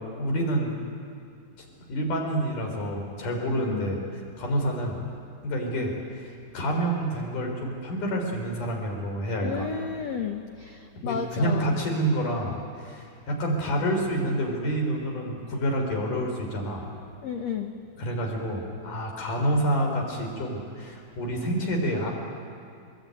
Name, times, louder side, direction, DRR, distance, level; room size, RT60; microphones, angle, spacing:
voice 1, 0.2-0.7 1.6-4.0 4.4-5.0 5.4-9.7 11.0-16.9 18.0-22.1, right 1 dB, 55° left, 1 dB, 5.4 m, -28 dB
voice 2, 9.4-11.8 17.2-17.7, left 7 dB, 80° left, 5 dB, 1.5 m, -32 dB
23.0 x 21.0 x 9.2 m, 2.4 s
omnidirectional pair, 4.4 m